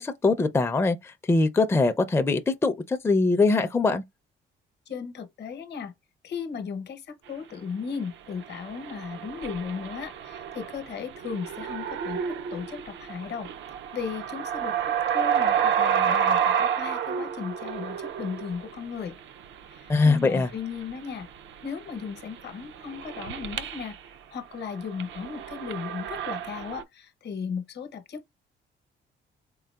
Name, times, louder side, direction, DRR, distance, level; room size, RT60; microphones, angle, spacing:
voice 1, 0.0-4.0 19.9-20.5, left 3 dB, 10° left, 0.4 m, -22 dB
voice 2, 4.9-5.9 6.2-13.5 13.9-19.2 19.7-21.3 21.6-24.0 24.3-28.4, left 6 dB, 60° left, 0.8 m, -36 dB
sound 1, 8.4-24.0 24.5-26.8, right 8 dB, 70° right, 0.5 m, -30 dB
3.9 x 3.8 x 2.3 m
cardioid pair, 90°, 20 cm